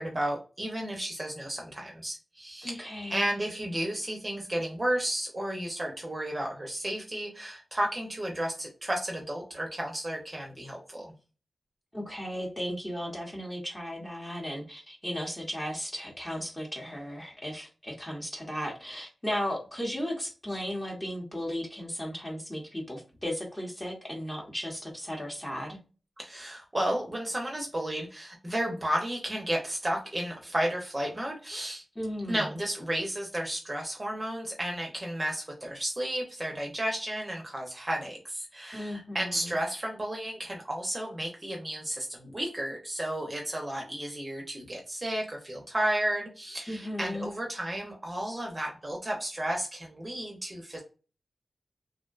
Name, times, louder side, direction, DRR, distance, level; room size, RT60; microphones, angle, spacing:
voice 1, 0.0-11.1 26.2-31.8 32.3-50.8, right 1 dB, 25° right, 0 dB, 0.6 m, -33 dB
voice 2, 2.6-3.3 11.9-25.8 32.0-32.6 38.7-39.5 46.7-47.3 48.2-48.4, equal, 20° left, -1 dB, 0.8 m, -36 dB
2.5 x 2.1 x 2.3 m, 0.34 s
cardioid pair, 65°, 0 cm